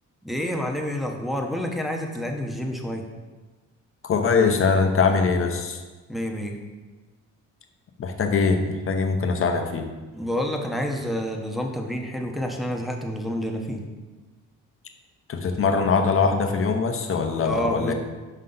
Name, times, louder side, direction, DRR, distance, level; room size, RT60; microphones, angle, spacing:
voice 1, 0.2-3.1 6.1-6.6 10.1-13.9 17.4-17.9, equal, ahead, 1 dB, 0.8 m, -28 dB
voice 2, 4.0-5.8 8.0-9.9 15.3-17.9, left 5 dB, 45° left, 5 dB, 0.8 m, -22 dB
5.5 x 5.4 x 3.9 m, 1.3 s
cardioid pair, 90°, 30 cm